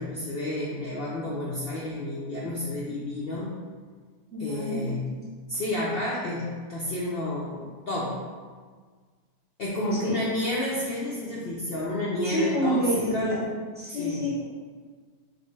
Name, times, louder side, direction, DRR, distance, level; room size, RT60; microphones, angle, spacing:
voice 1, 0.0-3.5 4.4-5.1 5.5-8.2 9.6-13.5 13.9-14.3, left 1 dB, 80° left, -5 dB, 0.5 m, -30 dB
voice 2, 4.3-4.9 9.9-10.2 12.2-13.4 13.7-14.4, equal, 10° right, -8 dB, 0.7 m, -28 dB
5.1 x 2.0 x 4.5 m, 1.5 s
omnidirectional pair, 1.7 m